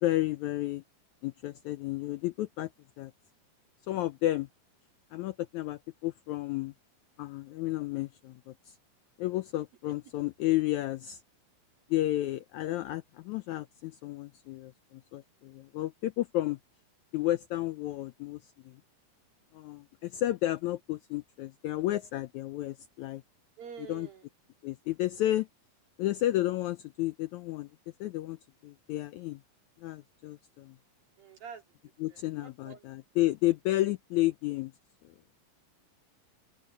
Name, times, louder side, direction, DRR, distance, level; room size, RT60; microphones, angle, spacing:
voice 1, 0.0-0.8 1.2-2.7 3.0-3.1 3.9-4.5 5.1-6.7 7.2-8.8 9.2-11.2 11.9-16.6 17.1-18.8 19.5-23.2 23.9-24.1 24.6-25.5 26.0-27.7 28.0-28.4 28.6-29.4 29.8-30.8 32.0-34.7 35.0-35.1, left 15 dB, 80° left, 1.7 m, -32 dB
voice 2, 23.6-24.3 31.2-31.6 32.1-32.9 34.2-34.3, right 7 dB, 85° right, 5.4 m, -47 dB
omnidirectional pair, 4.0 m